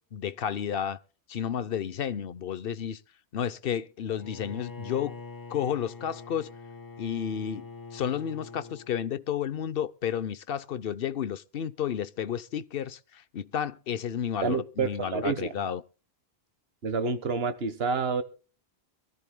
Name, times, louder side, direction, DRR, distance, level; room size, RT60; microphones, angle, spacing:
voice 1, 0.1-1.0 1.3-3.0 3.3-5.1 5.5-6.5 7.0-15.8, left 9 dB, 65° left, 1.0 m, -32 dB
Bowed string instrument, 4.1-8.9, left 4 dB, 20° left, 1.1 m, -44 dB
voice 2, 14.4-15.5 16.8-18.2, right 4 dB, 70° right, 1.5 m, -28 dB
24.5 x 14.0 x 2.2 m
omnidirectional pair, 1.1 m